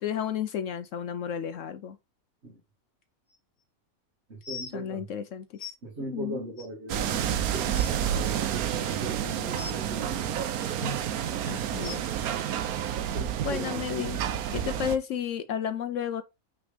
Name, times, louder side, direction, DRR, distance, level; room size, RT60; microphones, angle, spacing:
voice 1, 0.0-2.0 4.7-5.7 6.1-6.4 11.5-12.0 13.4-14.2 14.5-16.2, left 8 dB, 70° left, 0.9 m, -32 dB
sound 1, 3.3-3.4 4.4-4.7 5.6-5.7 6.6-6.7 7.2-7.3 7.6-7.9 9.6-9.8 10.8-11.0 11.8-12.0 13.1-13.2 14.0-14.1 14.8-14.9, left 3 dB, 50° left, 1.4 m, -39 dB
voice 2, 4.3-5.1 5.8-10.3 13.2-13.8, right 1 dB, 50° right, 2.0 m, -40 dB
sound 2, 6.9-15.0, right 10 dB, 80° right, 1.2 m, -29 dB
6.0 x 3.5 x 5.0 m
omnidirectional pair, 1.5 m